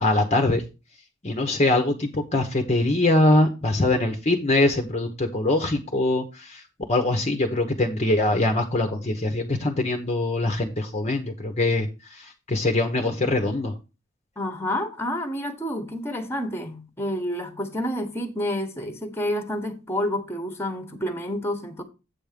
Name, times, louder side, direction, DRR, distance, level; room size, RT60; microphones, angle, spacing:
voice 1, 0.0-0.6 1.2-6.6 6.9-13.7, left 2 dB, 35° left, 1.0 m, -23 dB
voice 2, 14.4-21.8, left 1 dB, 10° left, 1.3 m, -29 dB
8.5 x 3.5 x 6.7 m
head